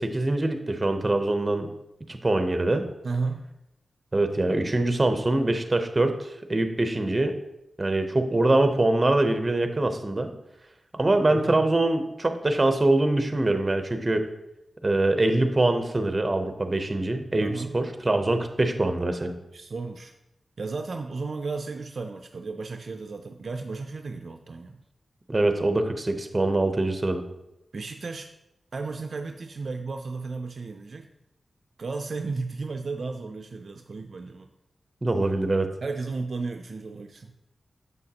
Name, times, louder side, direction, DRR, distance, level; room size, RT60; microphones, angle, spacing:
voice 1, 0.0-1.7 2.1-2.8 4.1-7.3 7.8-10.3 10.9-14.2 14.8-19.3 25.3-27.2 35.0-35.7, right 2 dB, 30° right, 7 dB, 0.7 m, -24 dB
voice 2, 3.0-3.5 11.3-11.7 17.4-17.8 19.5-20.1 20.6-24.8 27.7-28.3 28.7-31.1 31.8-34.5 35.8-37.3, right 4 dB, 60° right, 5 dB, 0.4 m, -34 dB
6.8 x 6.3 x 2.8 m, 0.88 s
wide cardioid pair, 80°, 0 cm